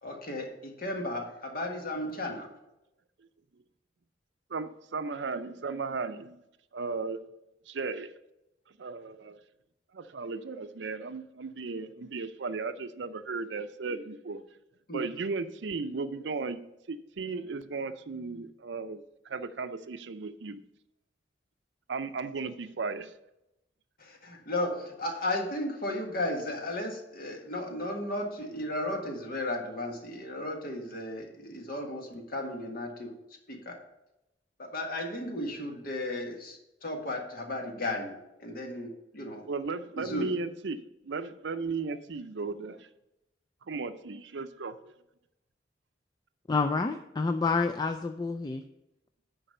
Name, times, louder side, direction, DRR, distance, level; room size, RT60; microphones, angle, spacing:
voice 1, 0.0-2.5 14.9-15.1 24.0-33.1 33.5-33.8 34.6-39.5 40.0-40.3, left 1 dB, 55° left, 1.6 m, -35 dB
voice 2, 4.5-6.4 6.7-7.2 7.7-8.1 8.8-9.4 9.9-14.4 14.9-20.6 21.9-23.1 39.5-42.9 43.7-44.9, right 4 dB, 70° right, 0.5 m, -36 dB
voice 3, 46.5-48.6, left 4 dB, 25° left, 0.3 m, -28 dB
10.0 x 4.0 x 6.6 m
head